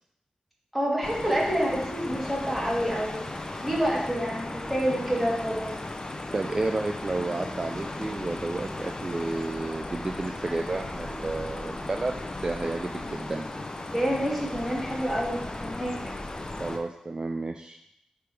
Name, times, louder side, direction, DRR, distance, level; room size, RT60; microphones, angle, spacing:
voice 1, 0.7-5.7 13.9-16.1, equal, 5° right, -4 dB, 2.3 m, -28 dB
sound 1, 1.0-16.8, left 2 dB, 35° left, 0.7 m, -36 dB
voice 2, 6.3-13.5 16.6-17.8, right 2 dB, 40° right, 5 dB, 0.4 m, -31 dB
5.8 x 3.5 x 4.8 m, 0.76 s
cardioid pair, 50°, 2 cm